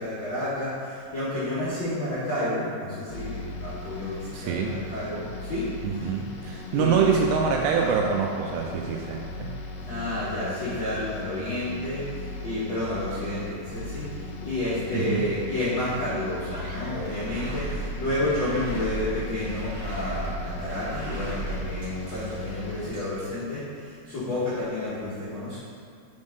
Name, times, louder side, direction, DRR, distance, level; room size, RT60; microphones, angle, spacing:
voice 1, 0.0-5.6 6.7-7.1 7.8-7.9 9.8-25.6, left 1 dB, 60° left, -13 dB, 1.2 m, -30 dB
sound 1, 3.1-22.9, left 2 dB, 85° left, 2.2 m, -38 dB
voice 2, 4.3-4.8 5.8-9.5 14.9-15.3, right 6 dB, 85° right, 0 dB, 2.6 m, -25 dB
sound 2, 16.5-23.2, right 1 dB, 65° right, 1.7 m, -36 dB
6.2 x 3.7 x 5.1 m, 2.4 s
omnidirectional pair, 4.7 m